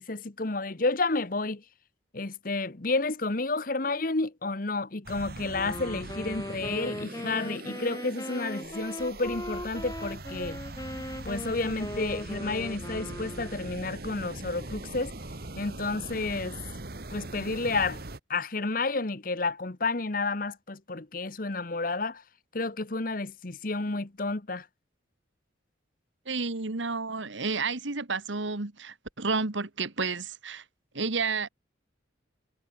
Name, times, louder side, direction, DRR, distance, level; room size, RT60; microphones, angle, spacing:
voice 1, 0.0-1.6 2.1-10.6 11.2-15.1 15.6-16.6 17.1-18.0 18.3-22.2 22.5-24.7, left 3 dB, 45° left, 1.1 m, -31 dB
sound 1, 5.0-18.2, right 2 dB, 50° right, 1.7 m, -41 dB
Wind instrument woodwind instrument, 5.5-13.8, left 1 dB, 20° left, 5.8 m, -39 dB
voice 2, 26.2-30.6 30.9-31.5, right 4 dB, 80° right, 1.7 m, -31 dB
head